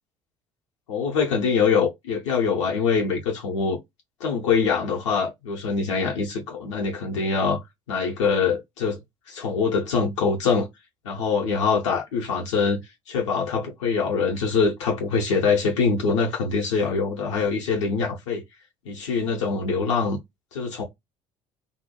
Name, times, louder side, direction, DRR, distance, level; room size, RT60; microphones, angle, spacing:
voice 1, 0.9-3.8 4.2-7.6 7.9-9.0 9.3-10.7 11.0-12.8 13.1-18.4 18.9-20.2 20.5-20.8, left 5 dB, 70° left, 0.6 m, -24 dB
2.7 x 2.1 x 2.8 m
figure-of-eight pair, 55°, 15 cm